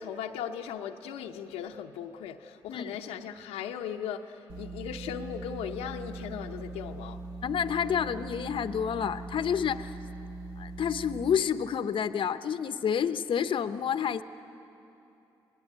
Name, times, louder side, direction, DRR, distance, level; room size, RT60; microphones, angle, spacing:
voice 1, 0.0-7.2 7.8-7.9, left 8 dB, 90° left, 3 dB, 0.8 m, -38 dB
sound 1, 4.5-11.4, right 2 dB, 75° right, 2.5 m, -41 dB
voice 2, 7.4-10.0 10.6-14.2, left 8 dB, 60° left, 11 dB, 0.8 m, -29 dB
26.5 x 19.0 x 9.4 m, 2.8 s
supercardioid pair, 60°, 10 cm